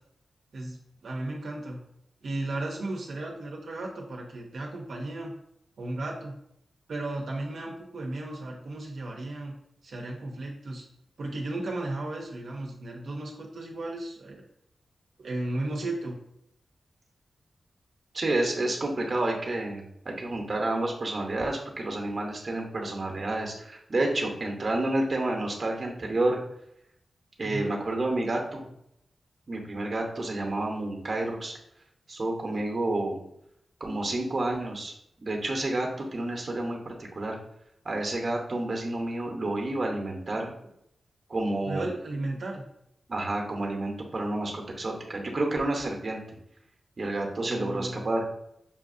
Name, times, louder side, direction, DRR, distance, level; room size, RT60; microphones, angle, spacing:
voice 1, 1.0-1.8 2.2-5.4 5.8-6.4 6.9-9.5 9.8-10.8 11.2-14.4 15.2-16.2 27.4-27.7 41.6-42.6 47.4-48.0, right 2 dB, 80° right, -1 dB, 0.6 m, -34 dB
voice 2, 18.1-26.4 27.4-28.7 29.5-31.5 32.1-33.2 33.8-34.9 35.2-37.4 37.8-40.5 41.3-41.9 43.1-46.2 47.0-48.3, right 2 dB, 40° right, 1 dB, 0.8 m, -29 dB
5.5 x 2.5 x 2.5 m, 0.75 s
wide cardioid pair, 95°, 0 cm